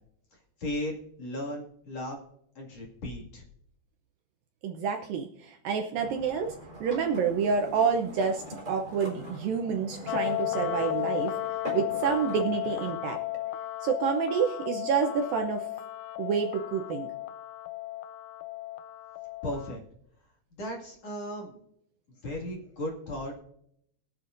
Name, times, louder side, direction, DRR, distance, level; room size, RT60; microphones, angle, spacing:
voice 1, 0.6-2.2 2.5-3.4 19.4-19.8 20.6-21.7 22.2-23.4, left 1 dB, 45° left, -2 dB, 2.9 m, -36 dB
voice 2, 4.6-6.6 6.8-11.4 11.7-13.2 13.8-15.7 16.2-17.1, right 6 dB, 75° right, 4 dB, 2.2 m, -28 dB
sound 1, 6.0-12.9, right 1 dB, 20° right, 3.7 m, -43 dB
sound 2, 10.1-19.7, left 15 dB, 85° left, 2.9 m, -34 dB
22.0 x 8.1 x 2.6 m, 0.71 s
omnidirectional pair, 4.8 m